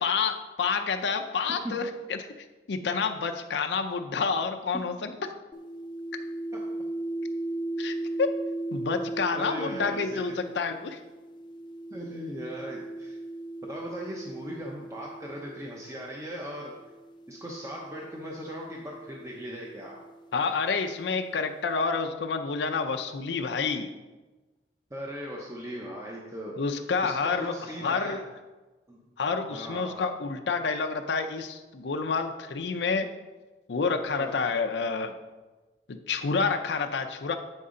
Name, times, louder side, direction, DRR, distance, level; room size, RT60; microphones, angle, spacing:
voice 1, 0.0-2.2 2.7-5.1 7.8-8.3 8.7-11.0 20.3-23.9 26.6-27.5 27.8-28.2 29.2-33.1 33.7-35.1 35.9-37.3, left 5 dB, 85° left, 5 dB, 0.5 m, -28 dB
sound 1, 5.5-15.9 16.8-20.5, right 2 dB, 25° left, 0.4 m, -37 dB
voice 2, 9.3-10.4 11.9-13.2 13.6-16.7 17.3-20.0 24.9-26.6 27.0-28.2 28.9-29.0 29.5-30.0 34.1-34.3, equal, 15° right, -2 dB, 0.6 m, -38 dB
7.8 x 5.4 x 3.7 m, 1.2 s
head